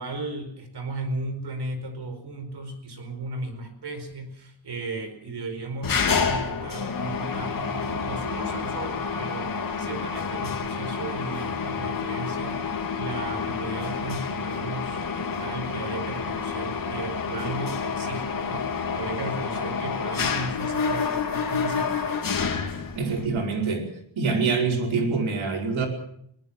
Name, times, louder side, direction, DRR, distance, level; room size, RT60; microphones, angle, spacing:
voice 1, 0.0-22.4, right 2 dB, 55° right, 8 dB, 4.9 m, -36 dB
Mechanisms, 5.8-23.3, left 5 dB, 45° left, 2.6 m, -29 dB
voice 2, 23.0-23.9 24.2-25.9, right 4 dB, 75° right, 4 dB, 5.2 m, -25 dB
21.0 x 19.5 x 7.4 m, 0.69 s
wide cardioid pair, 170°, 46 cm